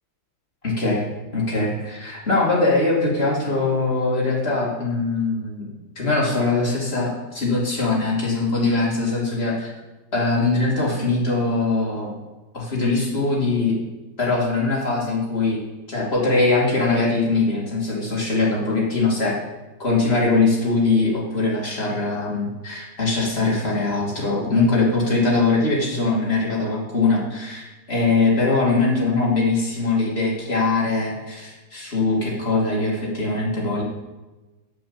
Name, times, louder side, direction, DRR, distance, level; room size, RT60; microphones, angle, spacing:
voice 1, 0.6-1.0 1.3-9.7 10.1-12.1 12.5-13.7 14.2-15.6 15.9-19.4 19.8-33.8, left 3 dB, 30° left, -4 dB, 2.8 m, -22 dB
8.1 x 8.0 x 7.1 m, 1.1 s
omnidirectional pair, 2.1 m